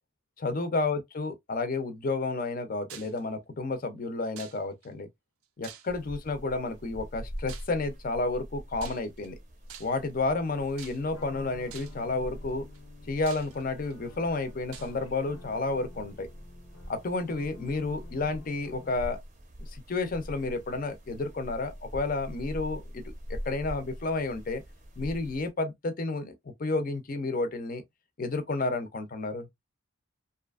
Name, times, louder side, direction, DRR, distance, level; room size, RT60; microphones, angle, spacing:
voice 1, 0.4-5.1 5.6-9.3 9.8-12.6 13.1-16.3 16.9-19.2 19.7-23.0 23.3-24.6 25.0-26.3 26.6-27.8 28.2-29.5, left 3 dB, 40° left, 0.5 m, -31 dB
sound 1, 2.9-3.2 4.4-4.9 5.6-6.2 7.5-7.8 8.8-9.3 9.7-10.1 10.8-11.2 11.7-12.1 12.7-12.8 13.3-13.9 14.7-14.9, right 9 dB, 80° right, 0.4 m, -47 dB
sound 2, 5.9-25.5, equal, 35° right, 0.6 m, -44 dB
sound 3, 11.1-19.2, left 4 dB, 85° left, 0.6 m, -52 dB
2.6 x 2.4 x 2.3 m
head